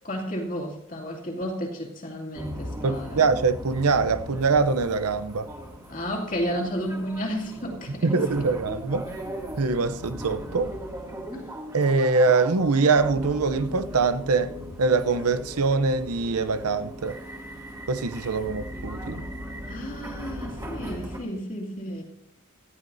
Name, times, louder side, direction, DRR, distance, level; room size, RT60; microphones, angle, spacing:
voice 1, 0.0-3.4 5.9-8.5 11.3-11.5 19.7-22.0, equal, 35° left, 2.6 m, -32 dB
sound 1, 2.3-21.2, equal, 15° right, 2.4 m, -38 dB
voice 2, 2.8-5.5 8.0-9.1 9.6-10.7 11.7-14.5 14.8-17.2 17.9-19.2, right 4 dB, 85° right, 0.7 m, -23 dB
18.5 x 13.5 x 2.7 m
head